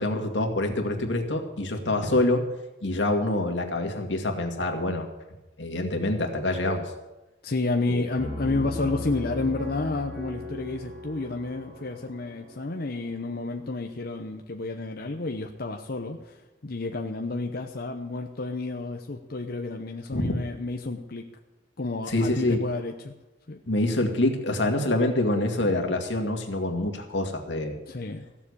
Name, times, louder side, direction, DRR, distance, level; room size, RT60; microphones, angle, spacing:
voice 1, 0.0-2.4 2.8-5.1 5.6-6.9 7.9-8.1 20.1-20.3 22.1-22.6 23.7-27.8, left 1 dB, 90° left, 3 dB, 2.1 m, -26 dB
voice 2, 7.4-16.4 16.6-21.2 21.8-23.1 23.5-23.6 27.9-28.3, left 3 dB, 55° left, 3 dB, 0.9 m, -31 dB
Piano, 8.2-13.7, left 1 dB, 40° right, 5.8 m, -37 dB
15.0 x 7.4 x 8.5 m, 1.0 s
head